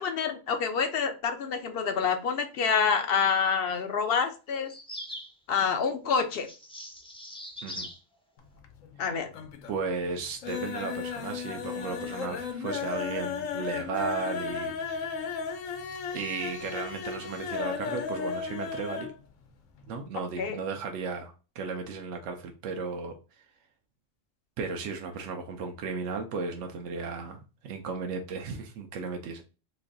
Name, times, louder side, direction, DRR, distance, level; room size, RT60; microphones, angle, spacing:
voice 1, 0.0-4.7 5.5-6.5 9.0-9.3 20.4-20.6, left 6 dB, 60° left, 0.7 m, -27 dB
sound 1, 4.6-5.3 6.3-8.0, left 1 dB, 10° left, 0.4 m, -41 dB
sound 2, 8.4-9.0 9.3-9.8 10.1-19.2 19.4-19.5 19.8-19.9, left 6 dB, 85° left, 1.0 m, -35 dB
voice 2, 9.7-15.2 16.1-19.1 19.9-23.1 24.6-29.4, right 4 dB, 75° right, 0.9 m, -35 dB
3.1 x 2.5 x 3.7 m
omnidirectional pair, 1.3 m